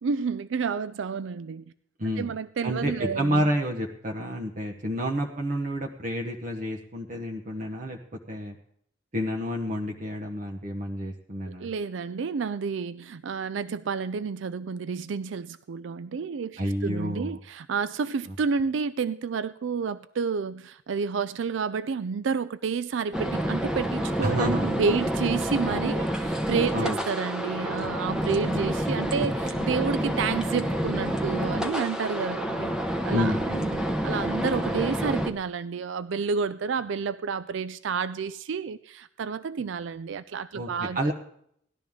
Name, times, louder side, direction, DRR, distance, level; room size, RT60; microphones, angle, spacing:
voice 1, 0.0-1.6 2.2-3.4 11.5-32.7 33.0-41.1, right 5 dB, 75° right, 14 dB, 0.4 m, -30 dB
voice 2, 2.0-2.3 2.6-8.0 8.3-8.6 9.1-11.7 16.6-17.4 24.2-24.7 26.7-27.0 33.1-33.4 40.5-41.1, equal, 40° right, 0 dB, 1.0 m, -29 dB
sound 1, 23.1-35.3, equal, 5° right, 0.9 m, -28 dB
18.0 x 12.5 x 3.6 m, 0.68 s
head